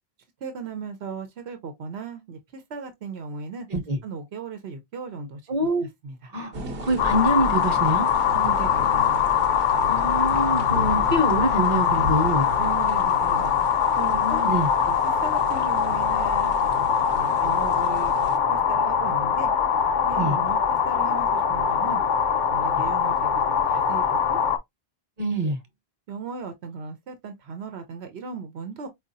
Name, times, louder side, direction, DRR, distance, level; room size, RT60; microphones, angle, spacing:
voice 1, 0.4-3.7 4.0-6.3 8.3-9.3 12.6-13.5 14.0-14.4 14.9-16.5 17.1-18.1 18.5-19.5 20.0-22.0 22.5-23.4 23.7-24.4 25.4-25.6 26.1-28.9, right 5 dB, 90° right, 1.1 m, -36 dB
voice 2, 5.5-5.9 6.3-6.5 6.8-8.1 9.9-12.5 14.2-14.7 20.2-20.4 25.2-25.6, right 1 dB, 40° right, 0.9 m, -25 dB
sound 1, 6.5-18.4, left 1 dB, 70° right, 1.0 m, -35 dB
sound 2, 7.0-24.6, left 7 dB, 55° left, 0.7 m, -22 dB
4.8 x 2.5 x 2.6 m
omnidirectional pair, 1.0 m